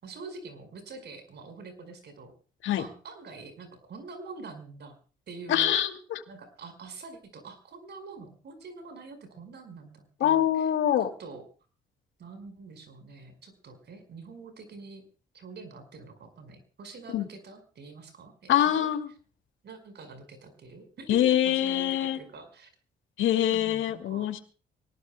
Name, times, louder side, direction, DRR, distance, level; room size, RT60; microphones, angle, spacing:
voice 1, 0.0-2.3 2.8-4.9 5.3-5.7 6.3-10.7 11.2-11.4 12.2-15.0 15.3-18.9 19.6-22.7 23.4-24.3, right 4 dB, 60° right, 8 dB, 5.1 m, -45 dB
voice 2, 5.5-6.2 10.2-11.1 17.1-17.3 18.5-19.1 21.1-22.2 23.2-24.4, left 11 dB, 75° left, 8 dB, 2.4 m, -24 dB
25.0 x 18.5 x 2.3 m, 0.38 s
cardioid pair, 90°, 20 cm